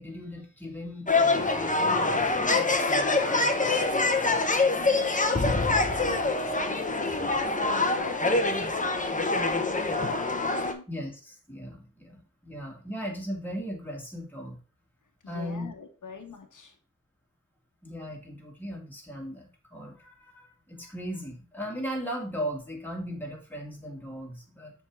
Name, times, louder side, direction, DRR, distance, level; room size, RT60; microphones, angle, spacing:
voice 1, 0.0-4.3 10.9-14.6 15.3-15.7 17.8-24.7, equal, 5° left, -1 dB, 2.2 m, -38 dB
sound 1, 1.1-10.7, left 3 dB, 25° left, 0.9 m, -25 dB
voice 2, 4.8-8.5 8.9-10.9 15.2-16.8, left 4 dB, 75° left, 3 dB, 1.2 m, -43 dB
7.0 x 3.8 x 4.6 m, 0.37 s
wide cardioid pair, 105°, 31 cm